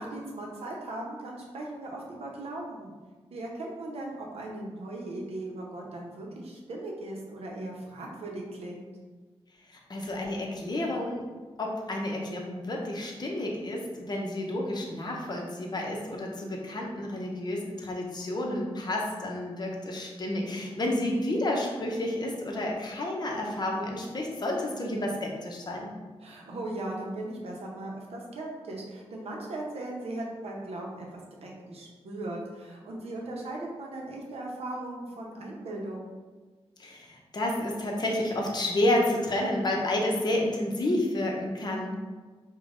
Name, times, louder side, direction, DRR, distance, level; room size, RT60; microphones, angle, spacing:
voice 1, 0.0-2.9 3.3-8.9 26.2-36.1, right 1 dB, 70° right, -1 dB, 0.7 m, -38 dB
voice 2, 9.9-11.2 11.6-25.9 36.8-41.9, left 1 dB, 40° left, -1 dB, 0.7 m, -30 dB
5.1 x 2.2 x 2.5 m, 1.4 s
cardioid pair, 85°, 11 cm